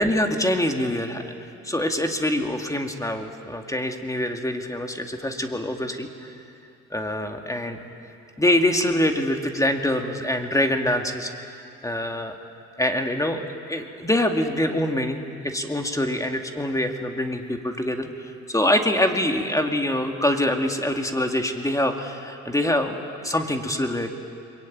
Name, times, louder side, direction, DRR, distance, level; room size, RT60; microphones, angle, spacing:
voice 1, 0.0-1.4 1.6-6.1 6.9-7.8 8.4-11.5 11.8-12.3 12.8-24.1, left 1 dB, 10° left, 4 dB, 2.2 m, -25 dB
22.5 x 22.5 x 9.4 m, 2.6 s
cardioid pair, 90°, 30 cm